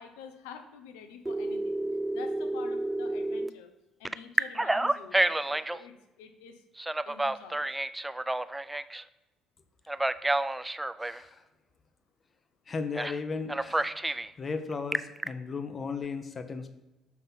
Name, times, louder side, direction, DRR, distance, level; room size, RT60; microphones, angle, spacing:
voice 1, 0.0-1.8 2.1-3.7 4.0-6.6 7.0-7.7 13.9-14.0, left 7 dB, 70° left, 7 dB, 0.8 m, -48 dB
Telephone, 1.3-3.5 4.0-5.8 6.8-9.0 9.9-11.2 12.9-13.2 13.5-14.3 14.7-15.3, right 2 dB, 10° right, 0.3 m, -29 dB
voice 2, 11.0-11.4 12.7-13.9 14.4-16.7, left 4 dB, 35° left, 9 dB, 0.9 m, -35 dB
6.0 x 5.3 x 5.9 m, 1.1 s
figure-of-eight pair, 50°, 0 cm